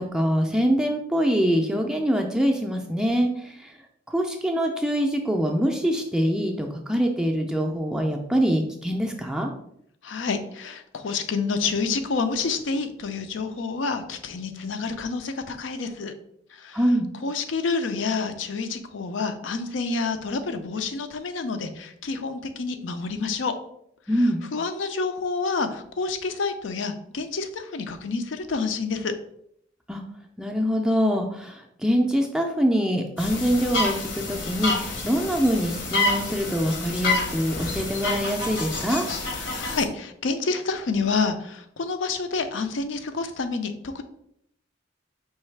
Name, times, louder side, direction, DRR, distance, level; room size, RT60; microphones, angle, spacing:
voice 1, 0.0-3.7 4.1-9.5 16.7-17.1 24.1-24.4 29.9-30.0 30.4-39.1, equal, 5° right, 2 dB, 0.3 m, -24 dB
voice 2, 10.0-16.1 16.5-16.8 17.2-23.5 24.5-29.1 39.2-44.0, left 4 dB, 90° left, 8 dB, 0.5 m, -28 dB
sound 1, 33.2-39.8, left 2 dB, 70° left, 0.9 m, -28 dB
4.6 x 3.1 x 3.3 m, 0.71 s
head